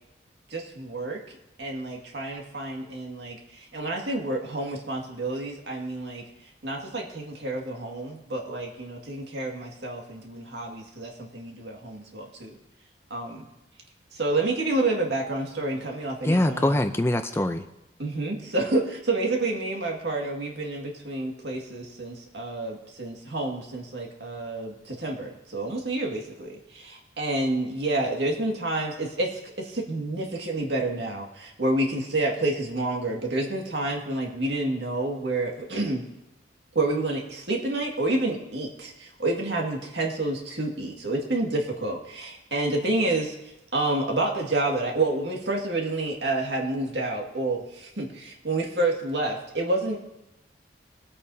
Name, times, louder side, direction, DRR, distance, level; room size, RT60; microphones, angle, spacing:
voice 1, 0.5-1.2 1.6-6.2 6.6-12.6 13.1-13.5 14.1-16.8 18.0-36.0 36.8-43.3 43.7-50.0, right 2 dB, 80° right, 0 dB, 2.0 m, -29 dB
voice 2, 16.2-17.6, left 1 dB, 15° left, 8 dB, 0.5 m, -23 dB
21.5 x 8.7 x 2.8 m, 0.94 s
head